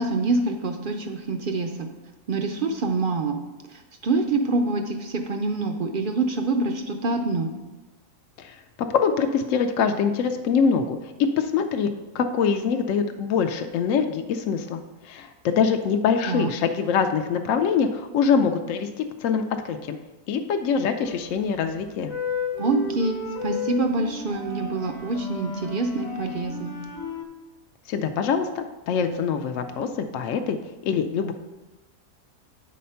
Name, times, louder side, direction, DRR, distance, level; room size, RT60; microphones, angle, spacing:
voice 1, 0.0-1.9 2.3-3.4 4.0-7.5 16.3-16.5 22.6-26.7, right 3 dB, 60° right, 4 dB, 0.5 m, -26 dB
voice 2, 8.9-20.0 20.3-22.1 27.9-30.6 30.8-31.3, left 6 dB, 70° left, 6 dB, 0.8 m, -24 dB
sound 1, 21.0-21.5 22.0-27.3, left 4 dB, 50° left, 1.2 m, -33 dB
8.5 x 4.2 x 5.6 m, 1.1 s
omnidirectional pair, 1.6 m